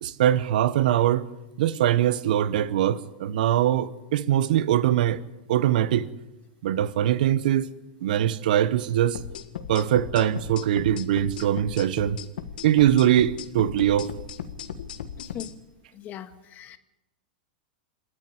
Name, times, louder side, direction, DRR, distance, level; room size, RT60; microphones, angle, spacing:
voice 1, 0.0-1.3 1.6-5.2 5.5-6.1 6.6-7.7 8.0-9.2 9.7-12.2 12.6-14.1, right 11 dB, 70° right, 1.0 m, -22 dB
sound 1, 9.1-15.5, left 8 dB, 75° left, 1.6 m, -37 dB
voice 2, 15.9-16.8, left 10 dB, 35° left, 1.7 m, -39 dB
27.5 x 9.9 x 9.8 m
hypercardioid pair, 115°, 5 cm